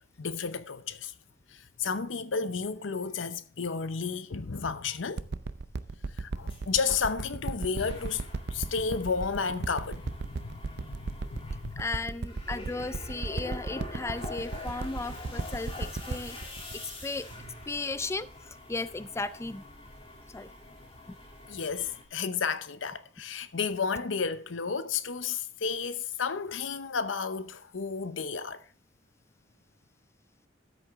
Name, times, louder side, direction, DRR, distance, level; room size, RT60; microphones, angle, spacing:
voice 1, 0.2-1.1 1.5-5.3 6.2-8.2 8.5-11.8 21.5-28.6, left 5 dB, 85° left, 0.8 m, -32 dB
sound 1, 5.2-17.9 18.5-18.6, right 3 dB, 60° right, 0.5 m, -36 dB
sound 2, 6.4-22.0, left 1 dB, 30° left, 2.6 m, -45 dB
voice 2, 11.8-16.4 17.0-17.3 17.7-19.6 20.3-20.5, left 3 dB, 15° left, 0.4 m, -35 dB
13.0 x 7.6 x 3.5 m
head